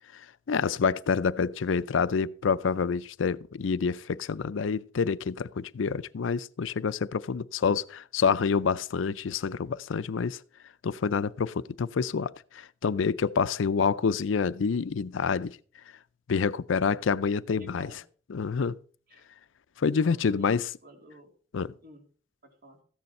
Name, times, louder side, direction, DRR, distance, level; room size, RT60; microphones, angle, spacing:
voice 1, 0.1-10.4 10.8-15.6 16.3-17.9 18.3-18.8 19.8-20.7 21.5-21.7, left 5 dB, 90° left, 0.5 m, -27 dB
voice 2, 17.6-18.0 19.1-19.3 20.0-21.3 21.8-22.0 22.4-22.8, right 1 dB, 50° right, 2.8 m, -50 dB
14.0 x 9.5 x 4.3 m
head